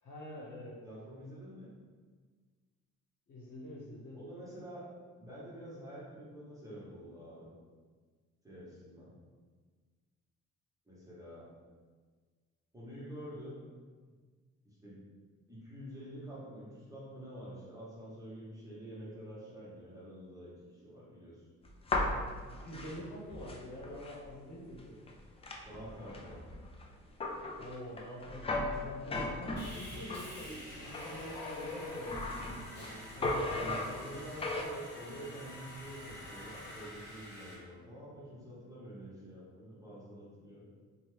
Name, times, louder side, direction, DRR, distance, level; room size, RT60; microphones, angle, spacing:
voice 1, 0.0-0.8 3.3-4.2 22.0-25.0 27.5-34.1, left 1 dB, 75° left, -5 dB, 1.0 m, -46 dB
voice 2, 0.8-1.7 4.1-4.8 5.2-7.5 8.4-9.1 10.9-11.5 12.7-13.6 14.6-15.0 15.5-21.4 25.6-26.4 33.5-40.6, equal, 10° right, -9 dB, 1.2 m, -47 dB
sound 1, 21.6-24.3 24.7-24.8 25.1-30.3 30.9-32.9 33.2-34.6, left 2 dB, 20° left, 0.3 m, -37 dB
Sawing, 29.6-37.5, left 1 dB, 35° left, 1.1 m, -48 dB
2.8 x 2.3 x 3.2 m, 1.5 s
cardioid pair, 90°, 30 cm